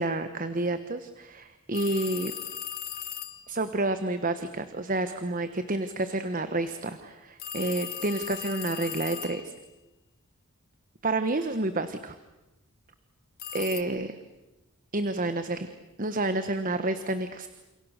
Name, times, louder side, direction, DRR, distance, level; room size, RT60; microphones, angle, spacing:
voice 1, 0.0-2.3 3.5-9.4 11.0-12.2 13.5-14.1 14.9-15.7 16.0-17.5, right 2 dB, 40° right, 10 dB, 1.2 m, -29 dB
sound 1, 1.7-3.5 7.4-9.7 13.4-13.8, left 9 dB, 45° left, 1.6 m, -37 dB
29.5 x 28.5 x 6.7 m, 1.0 s
head